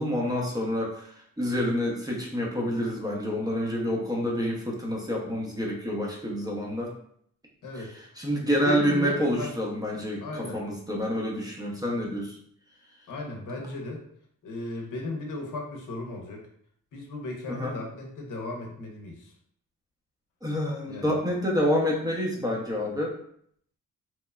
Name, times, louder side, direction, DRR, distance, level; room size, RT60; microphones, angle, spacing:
voice 1, 0.0-6.9 8.2-12.4 17.5-17.7 20.4-23.1, equal, 10° right, -3 dB, 0.7 m, -28 dB
voice 2, 7.6-7.9 8.6-9.5 10.2-10.6 13.1-14.0 14.4-16.4 16.9-19.3 20.8-21.2, left 2 dB, 60° left, 0 dB, 0.8 m, -35 dB
3.0 x 2.0 x 2.3 m, 0.65 s
cardioid pair, 65°, 35 cm